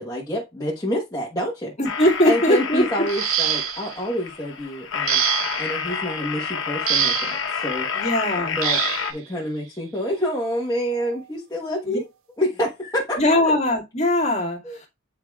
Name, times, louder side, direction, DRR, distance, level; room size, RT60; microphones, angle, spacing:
voice 1, 0.0-1.7 2.2-8.0 8.3-8.8 9.1-12.1 12.4-13.5 14.6-14.8, equal, 15° left, 1.2 m, -28 dB
sound 1, 1.8-9.1, left 6 dB, 60° left, 1.1 m, -29 dB
voice 2, 1.8-2.9 7.9-8.6 11.9-12.0 13.2-14.9, left 1 dB, 30° left, 2.0 m, -20 dB
sound 2, 3.1-4.0 5.1-5.7 6.9-7.4 8.6-9.1 10.3-10.4 10.9-11.2, right 11 dB, 80° right, 0.6 m, -24 dB
9.1 x 4.7 x 2.4 m
head